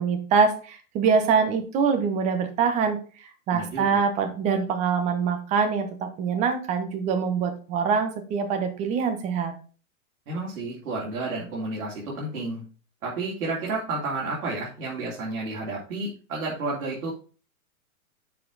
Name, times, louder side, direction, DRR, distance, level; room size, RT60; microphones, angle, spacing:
voice 1, 0.0-9.5, right 5 dB, 15° right, 6 dB, 0.8 m, -24 dB
voice 2, 3.5-4.0 10.3-12.6 13.0-17.1, right 3 dB, 70° right, -5 dB, 3.1 m, -31 dB
6.9 x 5.6 x 3.9 m, 0.37 s
hypercardioid pair, 155°, 43 cm